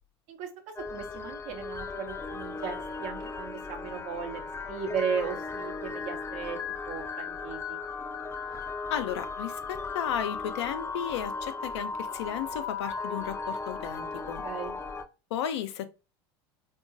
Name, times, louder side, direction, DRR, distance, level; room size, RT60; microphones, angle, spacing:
sound 1, 0.8-15.0, left 4 dB, 20° left, 0.4 m, -36 dB
voice 1, 0.9-6.6 6.9-7.8 14.4-14.7, right 7 dB, 60° right, 0.8 m, -36 dB
voice 2, 8.9-14.4 15.3-15.9, left 9 dB, 85° left, 0.4 m, -34 dB
3.7 x 2.3 x 2.5 m
hypercardioid pair, 95°, 14 cm